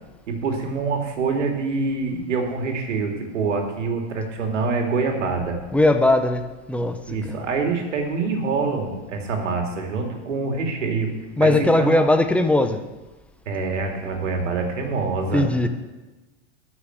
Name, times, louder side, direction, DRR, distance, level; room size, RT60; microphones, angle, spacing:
voice 1, 0.3-5.6 7.1-11.1 11.4-11.5 11.8-12.1 13.5-15.4, right 4 dB, 85° right, 3 dB, 2.6 m, -25 dB
voice 2, 5.7-7.4 11.4-12.8 15.3-15.7, left 2 dB, 5° left, 8 dB, 0.7 m, -19 dB
12.5 x 6.4 x 7.9 m, 1.2 s
hypercardioid pair, 125°, 36 cm